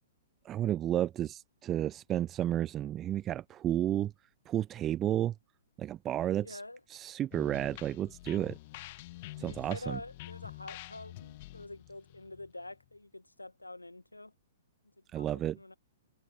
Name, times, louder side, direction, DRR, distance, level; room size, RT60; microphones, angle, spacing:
voice 1, 0.4-4.1 4.5-5.3 5.8-6.6 6.9-8.6 9.4-10.0 15.1-15.6, right 12 dB, 20° right, 1.0 m, -32 dB
voice 2, 6.4-6.8 9.3-14.3 15.1-15.7, left 2 dB, 85° left, 2.0 m, -46 dB
sound 1, 7.3-12.9, left 19 dB, 40° left, 1.5 m, -48 dB
figure-of-eight pair, 115°, 0 cm